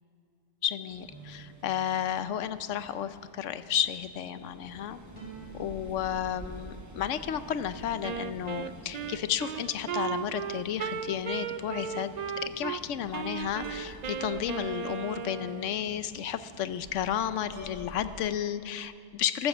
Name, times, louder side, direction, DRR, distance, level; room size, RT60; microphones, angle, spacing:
voice 1, 0.6-5.0 5.5-12.1 12.4-19.5, left 10 dB, 75° left, 13 dB, 1.0 m, -32 dB
sound 1, 0.9-18.2, right 1 dB, 15° right, 1.1 m, -49 dB
sound 2, 1.1-2.7 5.1-6.8 9.5-11.0 13.6-15.2 17.5-18.4, right 1 dB, 30° left, 2.8 m, -50 dB
Wind instrument woodwind instrument, 8.0-12.8 13.1-15.7, right 7 dB, 75° right, 0.3 m, -36 dB
13.5 x 13.0 x 7.2 m, 2.6 s
omnidirectional pair, 1.3 m